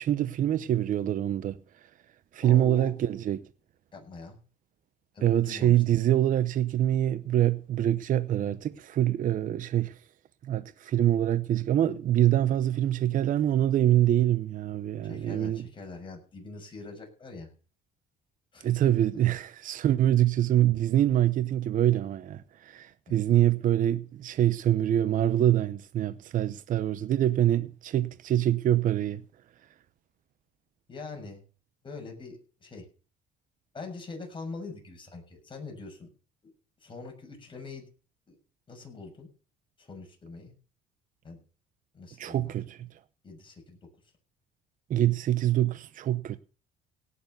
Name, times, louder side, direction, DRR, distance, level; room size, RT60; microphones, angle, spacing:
voice 1, 0.0-1.6 2.3-3.4 5.2-10.0 10.4-15.6 18.6-29.2 42.2-43.0 44.9-46.4, right 12 dB, 50° right, 0.7 m, -25 dB
voice 2, 2.4-2.9 3.9-4.4 5.1-5.8 15.0-17.5 18.5-19.2 23.1-23.2 30.9-31.4 31.8-32.9 33.7-36.1 36.4-36.5 36.8-37.9 38.3-38.4 38.7-39.3 39.8-40.5 41.2-41.4 41.9-42.5 43.2-43.9, left 3 dB, 30° left, 6.6 m, -43 dB
17.5 x 6.9 x 6.8 m
cardioid pair, 110°, 17 cm